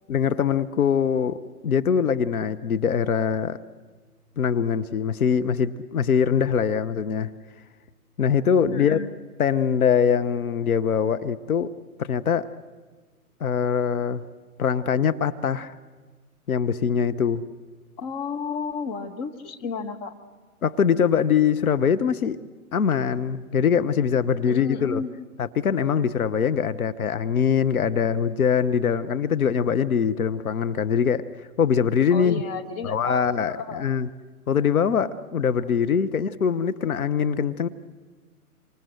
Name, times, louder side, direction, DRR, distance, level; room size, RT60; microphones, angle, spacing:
voice 1, 0.1-1.3 1.6-3.6 4.4-7.3 8.2-9.0 9.4-11.7 12.0-12.5 13.4-14.2 14.6-15.7 16.5-17.4 20.6-22.4 22.7-25.0 25.4-31.3 31.6-32.4 32.8-34.1 34.5-37.7, left 7 dB, 70° left, 12 dB, 1.1 m, -23 dB
voice 2, 8.7-9.1 18.0-20.1 24.4-25.1 32.1-34.0 35.6-35.7, left 5 dB, 25° left, 6 dB, 1.5 m, -33 dB
28.0 x 25.5 x 7.8 m, 1.4 s
hypercardioid pair, 140°, 45 cm